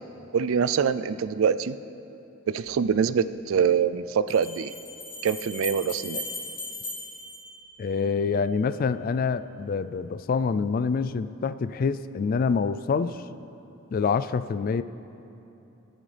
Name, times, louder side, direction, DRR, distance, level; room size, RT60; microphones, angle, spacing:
voice 1, 0.3-1.8 2.5-4.7 5.2-6.2, right 7 dB, 75° right, 14 dB, 0.4 m, -24 dB
Bell, 2.6-2.7 4.3-8.2, left 2 dB, 25° left, 3.3 m, -38 dB
voice 2, 7.8-13.2 13.9-14.8, left 5 dB, 45° left, 14 dB, 0.3 m, -26 dB
22.0 x 9.0 x 3.3 m, 2.9 s
head